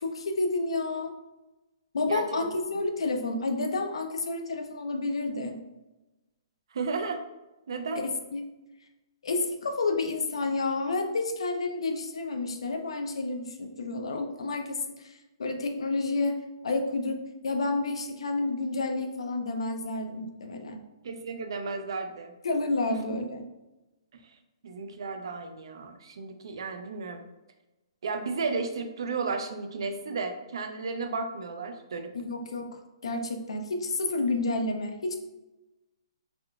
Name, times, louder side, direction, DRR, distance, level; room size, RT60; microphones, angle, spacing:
voice 1, 0.0-1.2 1.9-5.6 8.3-8.4 9.2-15.1 15.4-16.4 16.6-20.8 22.4-23.5 32.1-32.8 33.0-35.2, left 3 dB, 85° left, 5 dB, 0.4 m, -30 dB
voice 2, 2.1-2.5 6.7-7.2 7.7-8.0 21.0-22.3 22.9-23.0 24.6-27.2 28.0-32.1, right 4 dB, 60° right, 7 dB, 0.4 m, -33 dB
3.5 x 2.3 x 2.3 m, 1.0 s
hypercardioid pair, 175°, 3 cm